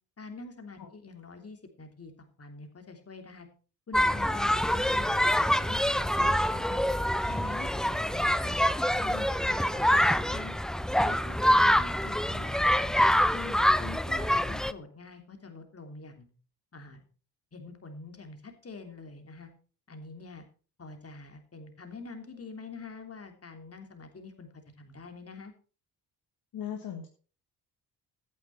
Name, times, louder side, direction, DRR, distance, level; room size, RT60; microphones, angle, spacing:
voice 1, 0.2-3.5 3.9-6.8 7.2-10.5 10.9-13.0 13.3-16.3 16.7-17.0 17.5-19.5 19.9-20.4 20.8-24.5 24.8-25.5, left 4 dB, 30° left, 6 dB, 3.2 m, -45 dB
sound 1, 3.9-14.7, equal, ahead, 0.5 m, -25 dB
voice 2, 26.5-27.1, left 9 dB, 45° left, 3 dB, 2.0 m, -37 dB
13.5 x 9.1 x 4.4 m, 0.38 s
figure-of-eight pair, 45°, 48 cm